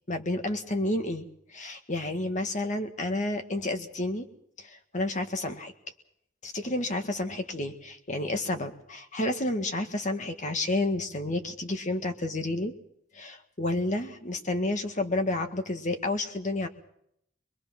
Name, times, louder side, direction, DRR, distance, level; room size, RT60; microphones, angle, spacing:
voice 1, 0.1-4.3 4.6-5.7 6.4-12.7 13.1-16.7, left 2 dB, 40° left, 6 dB, 1.9 m, -30 dB
24.0 x 22.0 x 6.0 m, 0.74 s
head